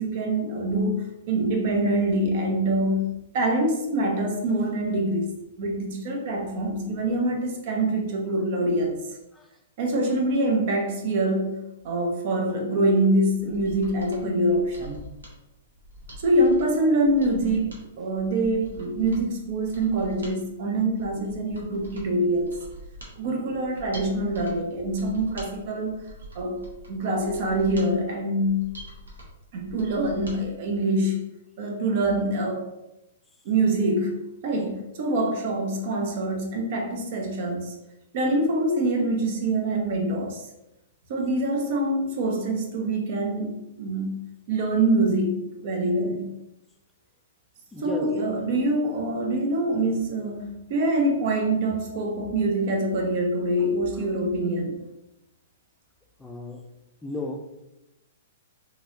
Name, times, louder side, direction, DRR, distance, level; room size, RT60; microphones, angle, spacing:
voice 1, 0.0-5.3 5.6-9.0 9.8-11.6 11.8-15.1 16.2-22.6 23.2-25.9 26.3-28.7 29.5-31.2 31.6-32.6 33.4-37.7 38.1-40.5 41.1-44.1 44.5-46.3 47.8-54.7, right 1 dB, 50° right, 2 dB, 0.7 m, -25 dB
Mechanisms, 13.4-30.4 30.7-30.8, right 1 dB, 80° right, 0.9 m, -45 dB
voice 2, 47.7-48.1 56.2-56.6 57.0-57.4, left 2 dB, 10° left, 2 dB, 0.4 m, -34 dB
2.9 x 2.9 x 2.5 m, 0.92 s
hypercardioid pair, 115°, 0 cm